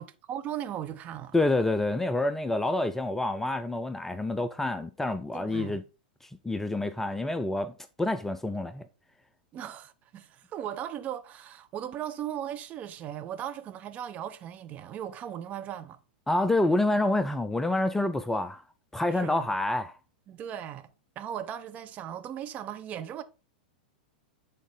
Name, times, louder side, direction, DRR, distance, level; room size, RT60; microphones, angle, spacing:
voice 1, 0.0-1.3 5.3-5.8 9.5-16.0 19.1-19.5 20.3-20.9 21.2-23.2, right 10 dB, 30° right, 0.7 m, -37 dB
voice 2, 1.3-5.8 6.4-7.7 8.0-8.8 16.3-18.6 18.9-19.9, left 2 dB, 5° left, 0.4 m, -27 dB
8.3 x 4.0 x 3.7 m
figure-of-eight pair, 95°, 5 cm